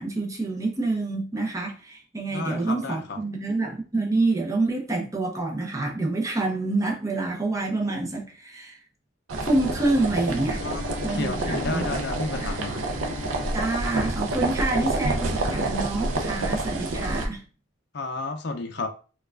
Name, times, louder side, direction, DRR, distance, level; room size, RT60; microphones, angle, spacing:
voice 1, 0.0-8.8 9.4-10.6 11.0-11.9 12.4-12.5 13.5-17.4, right 2 dB, 15° right, 0.6 m, -27 dB
voice 2, 2.3-3.2 10.6-12.8 17.9-18.9, left 3 dB, 55° left, 0.5 m, -32 dB
sound 1, 9.3-17.3, right 2 dB, 80° right, 0.5 m, -28 dB
Bowed string instrument, 10.5-15.3, left 4 dB, 45° right, 0.9 m, -42 dB
4.4 x 2.3 x 2.3 m
head